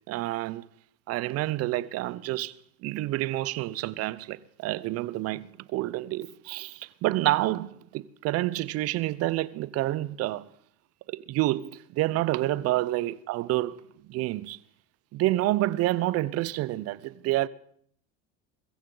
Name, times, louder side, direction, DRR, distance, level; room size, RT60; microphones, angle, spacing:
voice 1, 0.1-0.7 1.1-2.5 2.8-10.4 11.1-13.8 14.1-14.6 15.1-17.5, right 16 dB, 55° right, 0.7 m, -28 dB
22.5 x 15.0 x 3.9 m
supercardioid pair, 90°, 29 cm